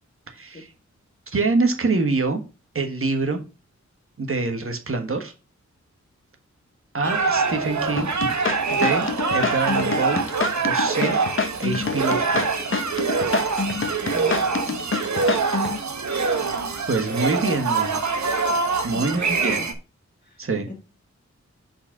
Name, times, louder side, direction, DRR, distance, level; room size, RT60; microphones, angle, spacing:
voice 1, 0.3-0.7 1.3-2.4 2.7-3.4 4.2-5.3 6.9-8.3 8.7-9.1 9.3-10.2 10.6-11.2 11.6-12.5 16.9-18.1 18.8-19.6 20.4-20.7, right 3 dB, 50° right, 5 dB, 1.4 m, -25 dB
sound 1, 7.0-19.7, right 4 dB, 75° right, 1.1 m, -24 dB
sound 2, 8.0-15.8, left 4 dB, 45° left, 0.9 m, -26 dB
voice 2, 14.0-15.0 18.9-19.7 20.2-20.7, left 2 dB, 30° left, -3 dB, 1.7 m, -39 dB
5.5 x 4.4 x 5.9 m, 0.31 s
wide cardioid pair, 70°, 29 cm